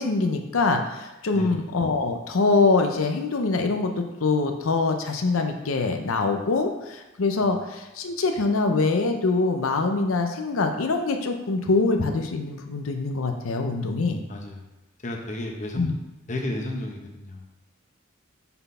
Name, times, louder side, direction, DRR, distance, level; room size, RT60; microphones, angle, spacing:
voice 1, 0.0-14.2 15.8-15.9, left 3 dB, 90° left, 4 dB, 0.6 m, -24 dB
voice 2, 14.3-14.6 15.0-15.9 16.3-17.5, left 1 dB, 35° left, 1 dB, 0.9 m, -32 dB
5.6 x 4.0 x 5.5 m, 0.98 s
head